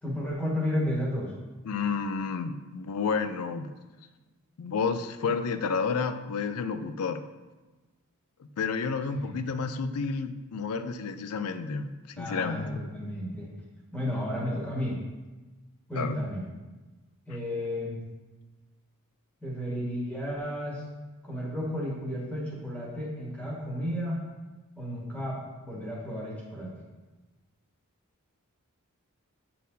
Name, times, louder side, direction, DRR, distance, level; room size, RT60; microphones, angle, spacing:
voice 1, 0.0-1.3 9.1-9.3 12.2-13.5 13.9-15.0 15.9-16.4 17.3-18.0 19.4-20.8 21.2-24.2 24.7-26.7, equal, 5° left, -6 dB, 1.6 m, -33 dB
voice 2, 1.6-3.7 4.6-7.2 8.6-11.9 12.2-12.8 15.9-16.2, left 5 dB, 75° left, 10 dB, 0.4 m, -30 dB
8.1 x 4.2 x 2.7 m, 1.2 s
head